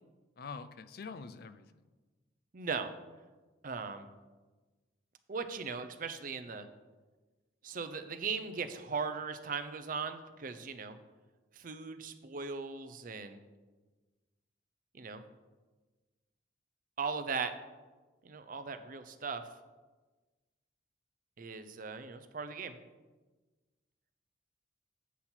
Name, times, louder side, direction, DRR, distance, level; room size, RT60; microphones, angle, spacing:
voice 1, 0.4-1.7, left 5 dB, 55° left, 12 dB, 0.4 m, -45 dB
voice 2, 2.5-2.9 3.6-4.1 5.3-6.7 7.6-11.0 11.5-13.4 14.9-15.2 17.0-17.5 18.2-19.4 21.4-22.8, right 5 dB, 50° right, 9 dB, 0.6 m, -38 dB
8.2 x 5.7 x 4.4 m, 1.3 s
head